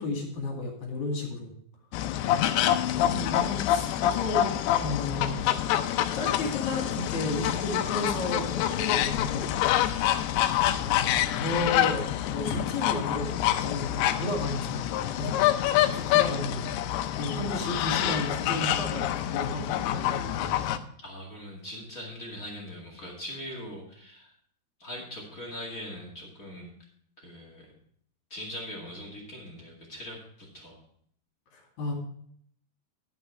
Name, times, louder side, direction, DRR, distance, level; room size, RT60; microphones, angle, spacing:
voice 1, 0.0-1.5 3.0-4.5 4.8-5.5 6.1-9.5 10.7-15.3 15.9-20.7 31.5-31.9, left 2 dB, 50° left, 0 dB, 3.4 m, -33 dB
sound 1, 1.9-20.8, left 12 dB, 80° left, 2.5 m, -27 dB
voice 2, 2.2-2.9 21.0-24.3 24.8-26.7 27.2-27.7 28.3-30.8, equal, 30° left, -2 dB, 1.7 m, -41 dB
11.5 x 7.3 x 4.6 m, 0.63 s
omnidirectional pair, 4.7 m